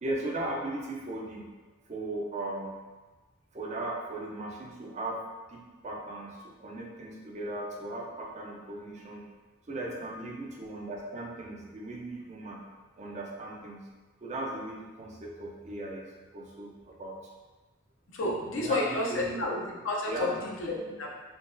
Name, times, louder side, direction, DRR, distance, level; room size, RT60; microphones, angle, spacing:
voice 1, 0.0-1.5 1.9-2.7 3.5-5.2 5.5-9.3 9.7-12.6 13.0-13.8 14.2-17.2 18.2-19.5 20.1-20.7, right 2 dB, 35° right, -1 dB, 0.5 m, -37 dB
voice 2, 18.1-20.3 20.6-21.1, left 2 dB, 70° left, -2 dB, 0.6 m, -31 dB
3.7 x 2.3 x 2.5 m, 1.3 s
head